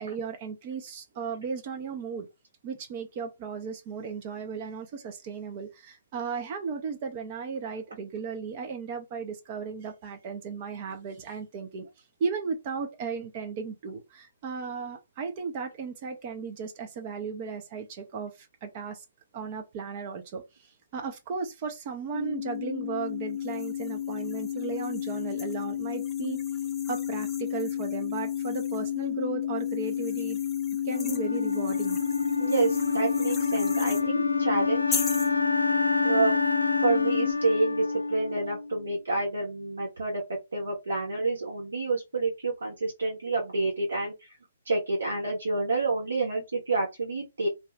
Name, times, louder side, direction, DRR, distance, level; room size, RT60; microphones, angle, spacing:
voice 1, 0.0-2.3 2.6-11.9 12.2-19.0 19.3-26.4 26.9-30.4 30.8-32.0, right 5 dB, 35° right, 0.6 m, -35 dB
sound 1, 22.1-37.3, left 10 dB, 45° left, 0.9 m, -30 dB
sound 2, 23.4-29.0 29.6-34.1 34.9-35.3, left 5 dB, 10° left, 0.4 m, -41 dB
Wind instrument woodwind instrument, 30.9-38.9, left 2 dB, 80° left, 0.4 m, -29 dB
voice 2, 32.4-35.0 36.0-36.3 36.8-40.2 40.5-44.1 44.7-47.5, right 3 dB, 65° right, 1.3 m, -28 dB
2.6 x 2.3 x 3.3 m
figure-of-eight pair, 130°, 0 cm